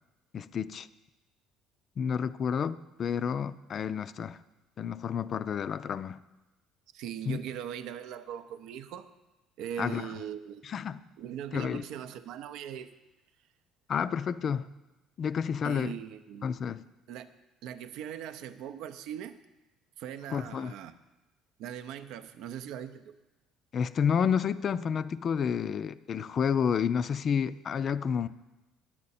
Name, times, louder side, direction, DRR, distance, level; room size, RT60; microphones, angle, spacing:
voice 1, 0.3-0.9 2.0-4.4 4.8-6.2 7.3-7.4 9.8-10.1 10.6-11.0 11.5-11.8 13.9-14.7 15.2-16.0 16.4-16.8 20.3-20.7 23.7-28.3, left 7 dB, 45° left, 15 dB, 0.4 m, -30 dB
voice 2, 6.9-9.1 9.6-10.6 11.2-12.9 15.6-16.5 17.1-17.3 17.6-19.4 20.0-20.9 21.6-23.1, right 9 dB, 75° right, 10 dB, 0.5 m, -40 dB
9.8 x 8.6 x 4.2 m, 1.1 s
supercardioid pair, 95°, 0 cm